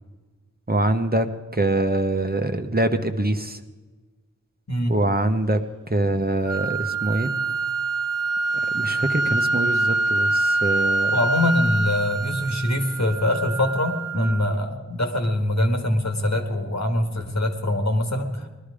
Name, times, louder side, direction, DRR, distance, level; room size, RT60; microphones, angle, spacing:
voice 1, 0.7-3.6 4.9-5.6 5.9-7.3 8.7-11.2 14.1-14.4, right 1 dB, 30° right, 6 dB, 1.1 m, -24 dB
sound 1, 6.5-14.5, right 3 dB, 80° right, 1.0 m, -25 dB
voice 2, 11.1-18.5, left 1 dB, 65° left, 4 dB, 1.9 m, -23 dB
19.5 x 12.0 x 5.0 m, 1.3 s
wide cardioid pair, 45°, 30 cm